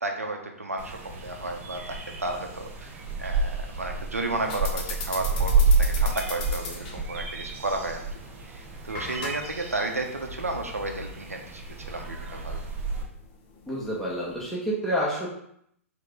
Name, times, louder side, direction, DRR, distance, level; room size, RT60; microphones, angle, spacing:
voice 1, 0.0-8.0 8.4-11.6 11.9-12.6, right 2 dB, 90° right, 3 dB, 0.7 m, -33 dB
sound 1, 0.8-13.0, right 3 dB, 25° right, 0.8 m, -29 dB
sound 2, 4.4-14.5, left 4 dB, 40° left, 0.8 m, -40 dB
voice 2, 13.7-15.3, equal, 5° left, -7 dB, 1.0 m, -28 dB
3.7 x 3.2 x 3.5 m, 0.71 s
figure-of-eight pair, 115°, 8 cm